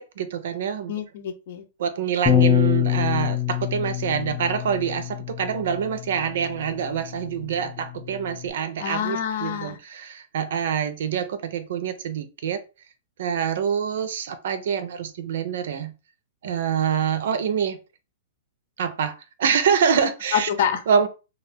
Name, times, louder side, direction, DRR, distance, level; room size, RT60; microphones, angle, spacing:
voice 1, 0.0-0.9 1.8-12.6 13.2-15.9 16.4-17.8 18.8-20.5 20.9-21.1, right 7 dB, 70° right, 10 dB, 0.5 m, -25 dB
voice 2, 0.9-1.6 8.8-9.8 20.3-20.8, left 8 dB, 60° left, 8 dB, 0.6 m, -26 dB
Bass guitar, 2.3-8.5, left 10 dB, 15° left, 0.4 m, -26 dB
2.4 x 2.2 x 3.4 m, 0.30 s
hypercardioid pair, 135°, 0 cm